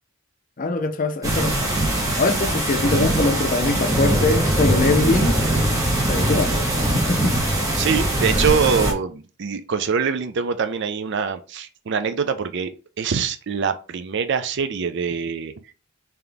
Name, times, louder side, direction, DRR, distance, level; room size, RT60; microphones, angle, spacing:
voice 1, 0.6-1.7 2.2-5.4 6.1-6.5 6.9-7.4, left 3 dB, 40° left, 0.5 m, -22 dB
sound 1, 1.2-8.9, right 1 dB, 15° right, 1.1 m, -21 dB
voice 2, 7.7-12.7 13.0-15.5, right 6 dB, 60° right, 0.5 m, -24 dB
3.9 x 2.9 x 3.4 m
head